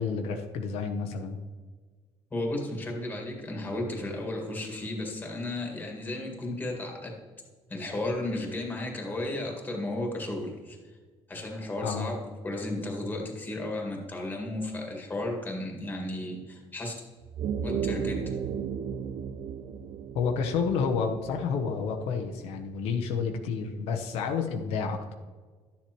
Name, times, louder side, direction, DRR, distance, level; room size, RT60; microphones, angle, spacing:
voice 1, 0.0-1.4 11.8-12.1 20.1-25.1, left 5 dB, 85° left, 4 dB, 0.9 m, -30 dB
voice 2, 2.3-7.2 7.7-11.0 11.3-16.9 17.6-18.4, left 1 dB, 15° left, 0 dB, 1.9 m, -34 dB
sound 1, 17.2-22.0, right 7 dB, 55° right, 0.6 m, -34 dB
11.5 x 7.2 x 3.0 m, 1.4 s
cardioid pair, 125°, 10 cm